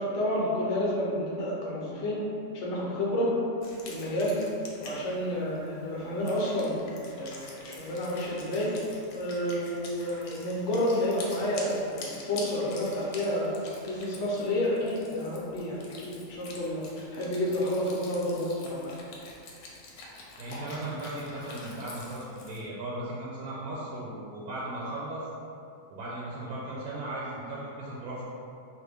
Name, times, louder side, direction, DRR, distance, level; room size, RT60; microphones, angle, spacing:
voice 1, 0.0-2.2 2.5-3.3 3.9-4.4 4.8-6.8 7.2-8.7 9.1-13.5 13.9-16.8 17.1-18.9, left 1 dB, 60° left, -5 dB, 0.9 m, -30 dB
Wind instrument woodwind instrument, 3.6-22.6, left 3 dB, 85° left, 1.1 m, -47 dB
voice 2, 20.4-25.3 25.9-28.2, right 1 dB, 85° right, -7 dB, 1.1 m, -37 dB
2.9 x 2.5 x 3.3 m, 2.5 s
omnidirectional pair, 1.5 m